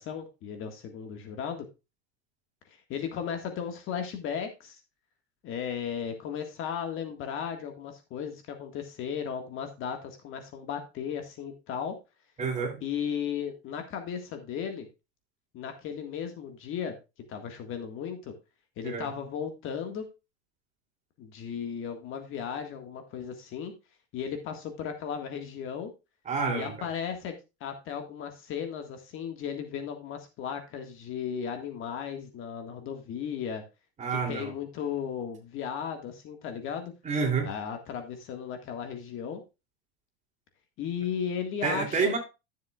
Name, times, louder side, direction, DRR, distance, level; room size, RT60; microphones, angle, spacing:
voice 1, 0.0-1.7 2.7-4.8 5.4-11.9 12.8-14.9 15.5-17.0 17.3-18.3 18.8-20.1 21.2-23.7 24.1-25.9 26.5-27.3 27.6-33.6 34.1-36.9 37.4-39.4 40.8-42.2, left 7 dB, 40° left, 1.7 m, -35 dB
voice 2, 12.4-12.8 18.8-19.1 26.2-26.9 34.0-34.5 37.0-37.5 41.6-42.2, right 5 dB, 25° right, 3.1 m, -28 dB
13.0 x 7.4 x 2.4 m
supercardioid pair, 135°, 31 cm